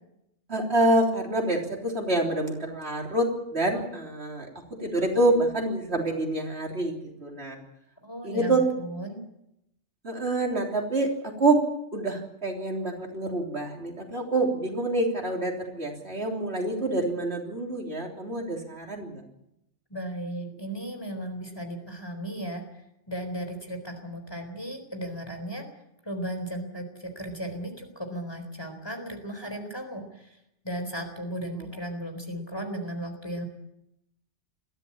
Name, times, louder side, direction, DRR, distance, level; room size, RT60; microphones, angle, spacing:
voice 1, 0.5-4.5 4.8-7.6 8.2-8.6 10.0-11.6 11.9-19.2 31.5-31.7, right 2 dB, 60° right, 0 dB, 3.8 m, -27 dB
voice 2, 8.0-9.2 19.9-22.6 23.1-25.7 26.0-30.3 30.6-33.4, right 1 dB, 20° left, 5 dB, 4.1 m, -35 dB
21.5 x 15.0 x 8.7 m, 0.83 s
omnidirectional pair, 1.2 m